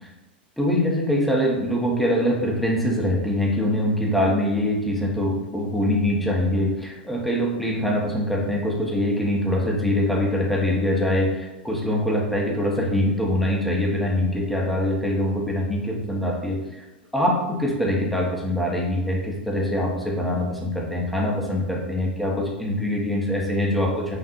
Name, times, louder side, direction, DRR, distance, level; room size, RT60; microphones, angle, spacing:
voice 1, 0.6-16.8 17.1-24.2, left 1 dB, ahead, -2 dB, 1.0 m, -23 dB
5.3 x 2.6 x 2.6 m, 1.0 s
hypercardioid pair, 100°, 6 cm